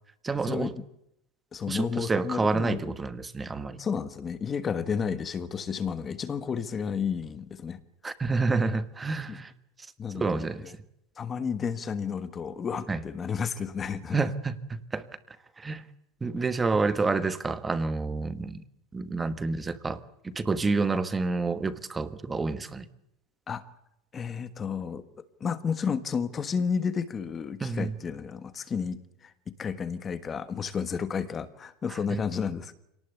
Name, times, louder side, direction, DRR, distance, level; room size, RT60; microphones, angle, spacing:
voice 1, 0.2-0.7 1.7-3.8 8.0-9.5 10.1-10.7 12.9-13.0 14.1-15.8 16.2-18.6 18.9-22.8 27.6-28.0 31.9-32.2, right 3 dB, 10° right, 13 dB, 1.3 m, -29 dB
voice 2, 1.5-2.9 3.8-7.8 9.3-9.4 10.0-10.5 11.2-14.2 23.5-23.6 24.1-29.3 29.6-32.7, left 6 dB, 15° left, 13 dB, 1.4 m, -32 dB
27.0 x 18.5 x 8.1 m, 0.82 s
supercardioid pair, 170°, 0 cm